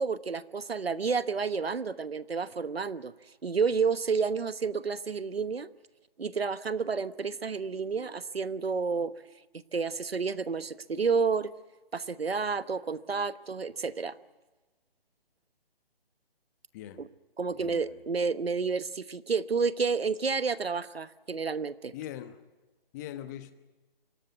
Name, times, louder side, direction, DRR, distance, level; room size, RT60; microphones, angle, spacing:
voice 1, 0.0-3.1 3.4-5.7 6.2-9.1 9.7-11.5 11.9-14.2 17.0-17.1 17.4-21.9, right 5 dB, 90° right, 16 dB, 1.2 m, -30 dB
voice 2, 17.5-18.0 21.9-22.4 22.9-23.5, left 11 dB, 20° left, 11 dB, 1.1 m, -41 dB
24.5 x 17.5 x 9.5 m, 1.2 s
figure-of-eight pair, 155°, 29 cm